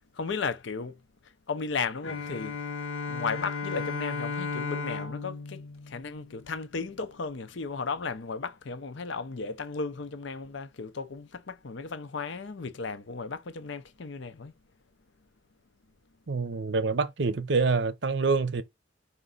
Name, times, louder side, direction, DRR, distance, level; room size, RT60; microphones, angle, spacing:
voice 1, 0.0-2.6 3.1-14.6, left 4 dB, 65° left, 0.6 m, -35 dB
Bowed string instrument, 2.0-6.8, left 4 dB, 80° left, 1.1 m, -35 dB
voice 2, 16.3-18.6, right 4 dB, 60° right, 0.6 m, -26 dB
5.2 x 2.6 x 3.9 m
head